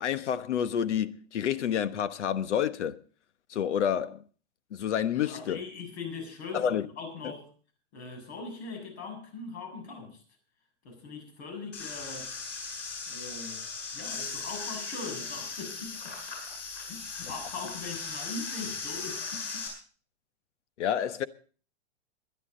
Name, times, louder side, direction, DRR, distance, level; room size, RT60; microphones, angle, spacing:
voice 1, 0.0-3.0 3.5-4.2 4.7-5.6 6.5-6.9 7.2-7.3 20.8-21.3, left 9 dB, 85° left, 1.2 m, -29 dB
voice 2, 5.2-7.5 7.9-10.2 10.8-12.3 13.1-13.6 13.9-16.4 16.7-19.7, left 4 dB, 70° left, 7.2 m, -41 dB
sound 1, 11.7-19.7, left 4 dB, 30° left, 7.3 m, -38 dB
21.5 x 11.0 x 3.9 m
supercardioid pair, 160°, 34 cm